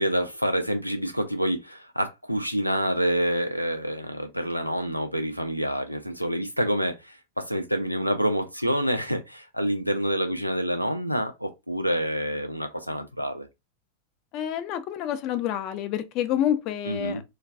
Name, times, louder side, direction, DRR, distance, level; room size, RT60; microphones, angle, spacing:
voice 1, 0.0-13.5 16.8-17.2, equal, 90° right, 0.4 m, -27 dB
voice 2, 14.3-17.2, left 10 dB, 40° left, 0.3 m, -28 dB
2.2 x 2.2 x 2.5 m
figure-of-eight pair, 90°, 0 cm